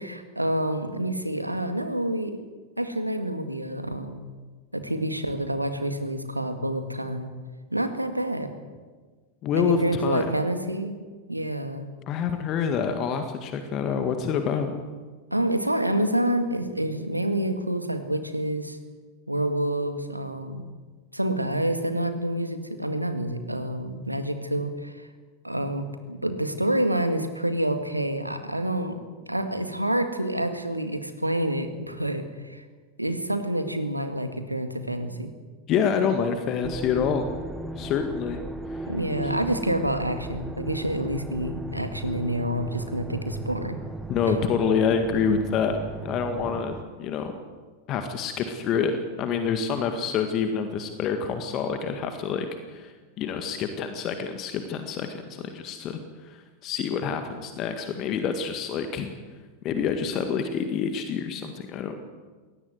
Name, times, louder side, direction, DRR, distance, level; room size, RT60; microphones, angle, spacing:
voice 1, 0.0-2.4 2.8-4.3 4.7-7.3 7.7-8.5 9.5-11.0 11.3-11.9 15.3-18.8 19.3-20.6 21.1-25.1 25.4-29.0 29.3-32.6 33.0-35.3 38.9-43.8 44.3-44.4, right 1 dB, 85° right, 8 dB, 1.9 m, -28 dB
voice 2, 9.4-10.3 12.1-14.8 35.7-37.3 37.8-38.4 39.2-39.3 44.1-45.8 46.0-47.3 47.9-56.0 56.6-59.1 59.6-62.0, left 6 dB, 35° left, 7 dB, 1.8 m, -27 dB
sound 1, 36.6-46.8, right 2 dB, 5° right, 1.4 m, -36 dB
21.5 x 18.5 x 8.0 m, 1.4 s
figure-of-eight pair, 90°, 0 cm